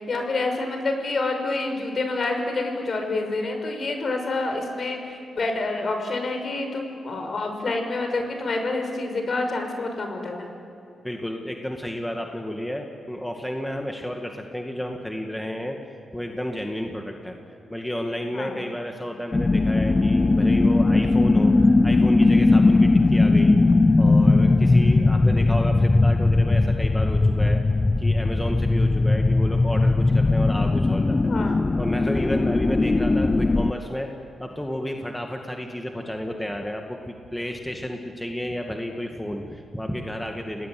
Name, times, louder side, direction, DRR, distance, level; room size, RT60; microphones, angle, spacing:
voice 1, 0.0-10.5 18.3-18.6 31.3-31.6, left 2 dB, 50° left, 4 dB, 5.9 m, -28 dB
voice 2, 11.0-15.8 16.1-17.3 17.7-23.6 24.0-27.6 28.0-31.3 31.8-34.1 34.4-40.7, equal, 5° left, 2 dB, 2.1 m, -31 dB
sound 1, 19.3-33.7, left 2 dB, 25° left, 0.6 m, -19 dB
28.0 x 19.0 x 9.4 m, 2.7 s
cardioid pair, 80°, 0 cm